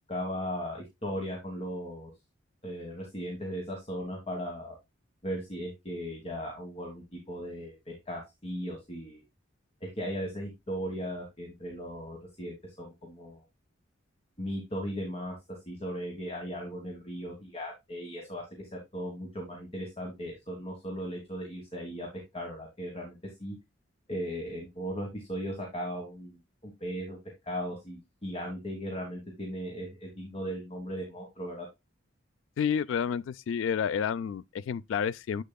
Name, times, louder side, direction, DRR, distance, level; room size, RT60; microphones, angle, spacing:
voice 1, 0.1-2.1 2.6-4.8 5.2-9.2 9.8-13.4 14.4-15.4 15.6-22.1 22.3-23.5 24.1-27.2 27.4-31.7, equal, 30° left, 1.5 m, -37 dB
voice 2, 32.6-35.4, left 7 dB, 75° left, 0.3 m, -30 dB
7.6 x 6.7 x 2.2 m
head